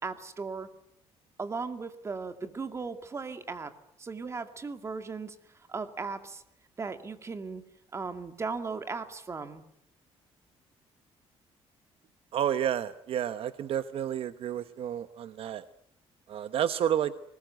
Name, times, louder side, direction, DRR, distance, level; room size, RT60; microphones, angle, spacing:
voice 1, 0.0-0.7 1.4-5.4 5.7-6.4 6.8-7.6 7.9-9.6, right 4 dB, 25° right, 8 dB, 2.2 m, -37 dB
voice 2, 12.3-15.6 16.3-17.1, right 10 dB, 60° right, 12 dB, 1.0 m, -30 dB
24.0 x 20.5 x 9.3 m, 0.77 s
cardioid pair, 140°, 11 cm